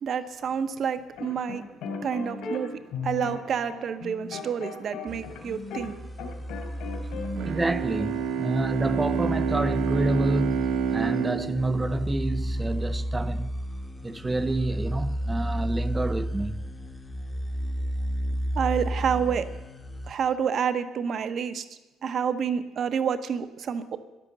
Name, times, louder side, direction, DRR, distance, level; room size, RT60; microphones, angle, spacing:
voice 1, 0.0-1.6 2.0-2.7 3.0-5.9 18.5-19.5 20.1-21.6 22.0-24.0, right 7 dB, 35° right, 0.9 m, -28 dB
sound 1, 1.2-5.9 6.2-7.4, left 5 dB, 65° left, 2.9 m, -36 dB
sound 2, 5.1-20.1, equal, 10° left, 1.0 m, -33 dB
Bowed string instrument, 7.4-12.9, right 7 dB, 65° right, 1.0 m, -29 dB
voice 2, 7.5-13.5 14.0-16.6, right 2 dB, 10° right, 0.5 m, -28 dB
13.0 x 11.0 x 7.5 m
cardioid pair, 170°, 0 cm